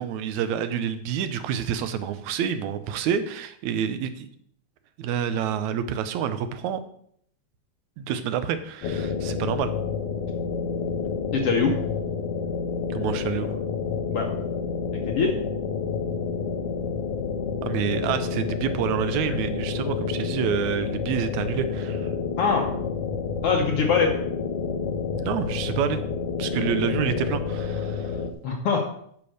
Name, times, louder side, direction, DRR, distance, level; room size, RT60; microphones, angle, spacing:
voice 1, 0.0-4.3 5.0-6.8 8.0-9.7 12.9-13.5 17.6-22.1 25.2-26.0 26.4-28.2, right 8 dB, 75° right, 11 dB, 2.0 m, -28 dB
sound 1, 8.8-28.3, left 5 dB, 80° left, 2.3 m, -29 dB
voice 2, 11.3-11.8 14.1-14.3 15.1-15.3 22.4-22.7 23.4-24.1 28.4-28.8, left 5 dB, 60° left, 1 dB, 1.7 m, -22 dB
9.7 x 5.2 x 6.4 m, 0.66 s
omnidirectional pair, 3.5 m